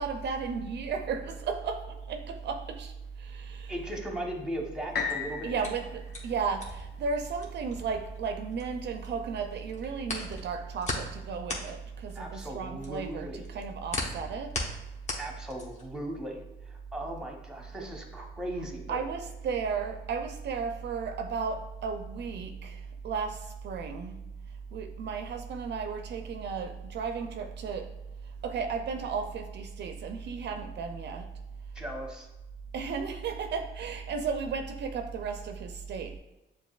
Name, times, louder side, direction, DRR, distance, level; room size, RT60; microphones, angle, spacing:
voice 1, 0.0-3.7 5.4-14.6 18.9-24.2 24.7-27.9 28.2-31.3 32.7-36.2, right 5 dB, 60° right, 0.4 m, -34 dB
voice 2, 3.7-5.5 12.1-13.5 15.2-19.0 31.7-32.3, right 1 dB, 5° right, 0.9 m, -38 dB
sound 1, 4.9-8.9 9.5-9.6, left 6 dB, 55° left, 0.7 m, -38 dB
sound 2, 4.9-9.1 9.4-16.0, left 2 dB, 35° left, 1.0 m, -38 dB
6.8 x 2.5 x 2.3 m
cardioid pair, 90°, 20 cm